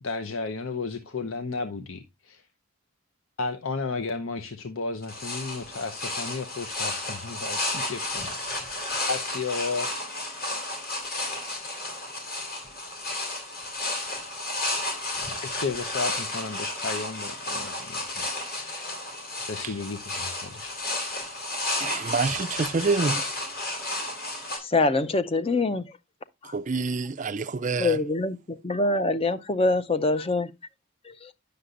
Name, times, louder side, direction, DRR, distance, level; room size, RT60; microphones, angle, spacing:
voice 1, 0.0-2.4 3.4-8.7 9.1-9.9 15.4-19.0 19.5-20.8, left 4 dB, 70° left, 0.8 m, -33 dB
sound 1, 5.0-24.6, left 2 dB, 45° left, 2.9 m, -32 dB
voice 2, 21.8-23.2 26.5-28.0, right 4 dB, 35° right, 0.4 m, -27 dB
voice 3, 24.6-25.9 26.4-26.5 27.8-30.5 31.0-31.3, left 2 dB, 25° left, 0.5 m, -25 dB
9.6 x 6.6 x 2.5 m
head